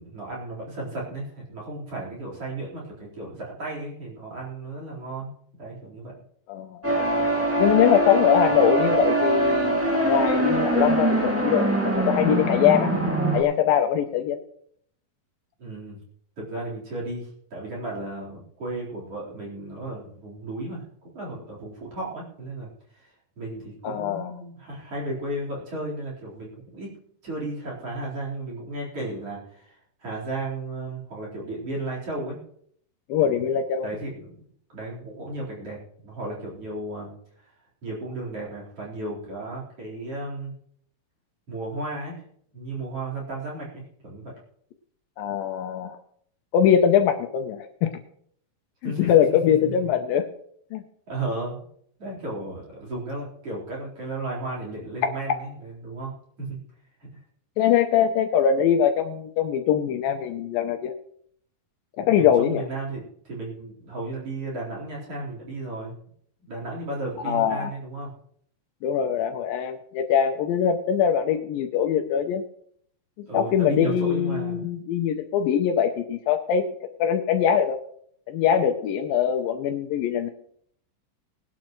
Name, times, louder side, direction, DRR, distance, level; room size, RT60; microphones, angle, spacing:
voice 1, 0.0-5.3 5.6-6.1 15.6-16.0 16.4-26.9 27.2-32.4 33.2-33.4 33.8-34.4 34.7-35.8 36.0-37.1 37.8-40.5 41.5-42.2 42.5-44.3 48.8-49.9 51.1-51.6 52.0-56.1 56.4-56.6 62.1-65.9 66.4-68.1 73.3-74.6, right 2 dB, 40° right, -3 dB, 4.9 m, -34 dB
voice 2, 6.5-6.8 7.6-12.9 13.3-14.4 23.8-24.3 33.1-33.9 45.2-46.0 46.5-47.9 48.8-50.3 50.7-50.8 55.0-55.1 57.6-60.9 62.0-62.6 67.3-67.7 68.8-72.4 73.3-76.7 77.0-77.8 78.3-80.3, left 9 dB, 75° left, 6 dB, 2.3 m, -22 dB
sound 1, 6.8-13.4, right 1 dB, 5° right, 1.2 m, -23 dB
20.0 x 12.0 x 3.1 m, 0.66 s
omnidirectional pair, 4.3 m